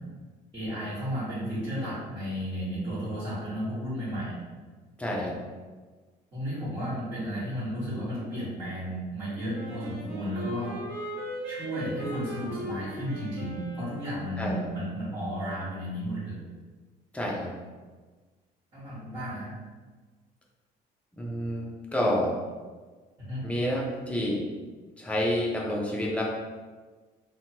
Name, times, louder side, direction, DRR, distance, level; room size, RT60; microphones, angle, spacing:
voice 1, 0.5-4.4 6.3-10.7 11.5-16.4 18.7-19.5 23.2-23.4, equal, 35° right, -11 dB, 1.4 m, -33 dB
voice 2, 5.0-5.3 14.4-14.6 17.1-17.5 21.2-22.3 23.4-24.4 25.0-26.2, equal, 5° left, -3 dB, 0.6 m, -28 dB
Wind instrument woodwind instrument, 9.5-14.3, equal, 70° right, 1.1 m, -38 dB
2.8 x 2.2 x 2.8 m, 1.4 s
cardioid pair, 110°, 17 cm